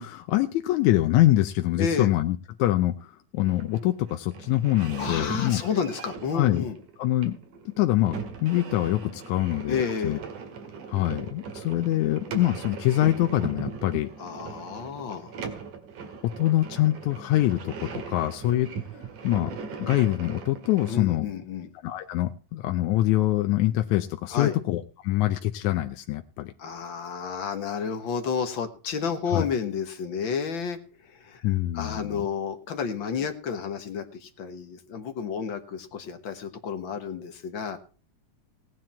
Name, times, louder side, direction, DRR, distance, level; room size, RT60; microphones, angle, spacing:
voice 1, 0.0-5.6 6.3-6.6 7.0-7.4 7.7-10.2 10.9-14.1 16.2-18.7 19.2-21.3 21.8-26.5 29.3-29.5 31.4-32.2, left 15 dB, 80° left, 7 dB, 2.0 m, -25 dB
voice 2, 1.8-2.1 5.0-6.8 9.7-10.2 14.2-15.4 20.9-21.7 24.3-24.6 26.6-31.4 31.7-37.8, left 6 dB, 50° left, 7 dB, 1.7 m, -31 dB
sound 1, 3.4-21.0, right 5 dB, 90° right, 3.4 m, -39 dB
17.0 x 9.3 x 4.3 m, 0.38 s
omnidirectional pair, 3.4 m